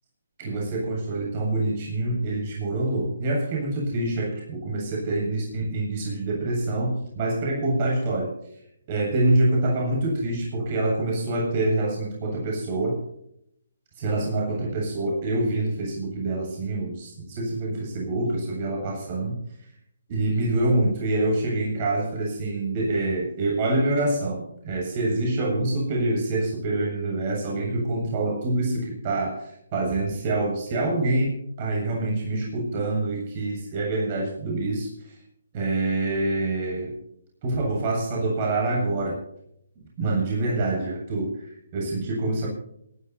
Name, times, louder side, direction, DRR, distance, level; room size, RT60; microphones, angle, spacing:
voice 1, 0.4-8.3 8.9-13.0 14.0-19.4 20.1-35.2 35.5-36.9 37.4-39.2 40.0-42.5, right 2 dB, 35° right, -2 dB, 7.8 m, -26 dB
27.0 x 12.0 x 2.8 m, 0.73 s
hypercardioid pair, 150°, 0 cm